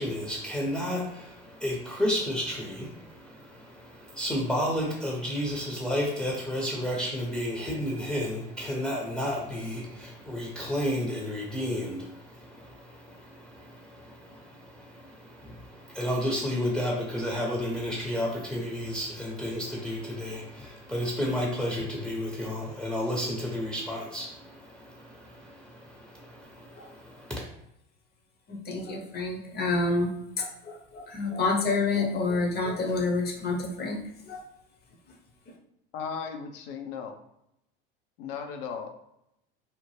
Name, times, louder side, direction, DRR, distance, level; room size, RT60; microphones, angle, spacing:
voice 1, 0.0-27.4, left 1 dB, ahead, -3 dB, 0.6 m, -32 dB
voice 2, 28.5-34.0 34.3-34.4, left 3 dB, 35° left, 2 dB, 0.7 m, -28 dB
voice 3, 35.9-37.2 38.2-38.9, left 6 dB, 70° left, 5 dB, 0.6 m, -36 dB
2.8 x 2.0 x 3.2 m, 0.80 s
hypercardioid pair, 85°, 30 cm